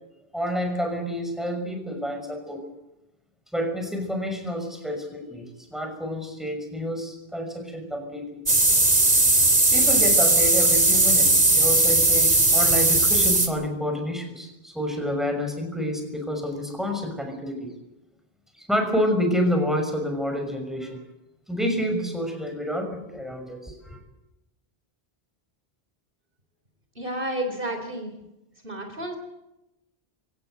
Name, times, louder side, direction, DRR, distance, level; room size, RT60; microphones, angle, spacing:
voice 1, 0.3-2.6 3.5-8.4 9.7-17.7 18.5-21.0 21.5-24.0, equal, ahead, 4 dB, 6.1 m, -28 dB
sound 1, 8.5-13.5, right 2 dB, 40° right, 2.9 m, -18 dB
voice 2, 27.0-28.1 28.6-29.2, right 1 dB, 55° right, 5 dB, 3.8 m, -31 dB
24.5 x 17.5 x 8.1 m, 0.92 s
omnidirectional pair, 1.1 m